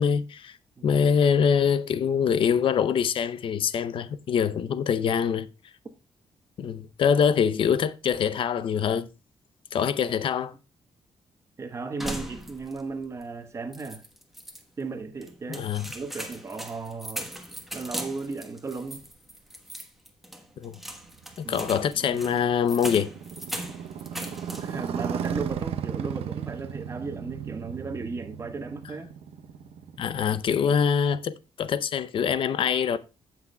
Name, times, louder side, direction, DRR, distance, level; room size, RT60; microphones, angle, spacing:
voice 1, 0.0-0.6 0.8-5.5 6.6-9.1 9.7-10.5 15.6-15.9 20.6-20.7 21.4-23.1 30.0-33.0, left 7 dB, 60° left, 0.6 m, -24 dB
voice 2, 11.6-14.0 14.8-15.7 15.9-17.3 17.7-19.0 21.4-21.7 21.9-22.4 24.6-29.1, right 4 dB, 30° right, 1.2 m, -35 dB
sound 1, 12.0-12.9 13.2-13.3 13.7-14.6 15.2-24.9 25.2-25.8, equal, ahead, 1.1 m, -39 dB
Motorcycle, 20.9-30.8, right 8 dB, 85° right, 0.7 m, -36 dB
16.0 x 6.0 x 2.2 m
cardioid pair, 135°, 10 cm